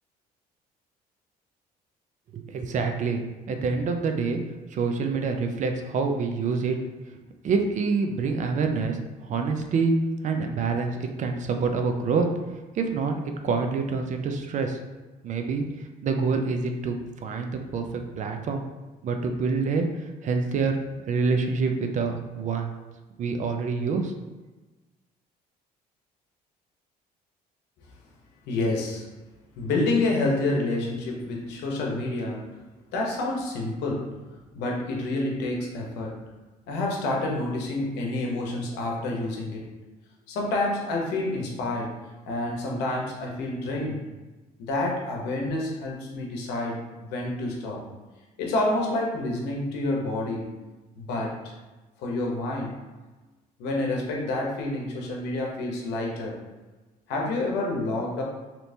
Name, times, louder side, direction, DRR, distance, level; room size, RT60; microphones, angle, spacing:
voice 1, 2.3-4.4 4.7-6.8 7.4-9.9 10.2-12.3 12.7-14.8 15.2-18.6 19.0-19.9 20.2-20.8 21.1-22.7 23.2-24.1, right 4 dB, 45° right, 5 dB, 0.4 m, -26 dB
voice 2, 28.5-29.1 29.6-32.5 32.9-34.1 34.5-36.2 36.7-39.7 40.3-42.0 42.3-44.0 44.6-47.8 48.4-50.5 51.0-51.5 52.0-52.8 53.6-56.4 57.1-58.2, left 2 dB, 90° left, 0 dB, 0.8 m, -28 dB
3.2 x 2.9 x 2.7 m, 1.2 s
cardioid pair, 110°, 17 cm